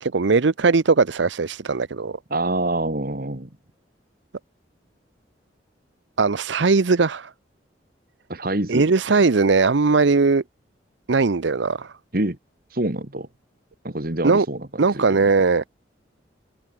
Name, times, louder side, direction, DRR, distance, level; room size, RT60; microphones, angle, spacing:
voice 1, 0.0-2.2 6.2-7.3 8.7-10.4 11.1-11.9 14.2-14.5 14.8-15.6, right 4 dB, 80° right, 0.7 m, -19 dB
voice 2, 2.3-3.5 8.3-8.9 12.1-12.4 12.7-13.3 13.8-14.7 14.9-15.3, right 1 dB, 50° right, 2.1 m, -26 dB
head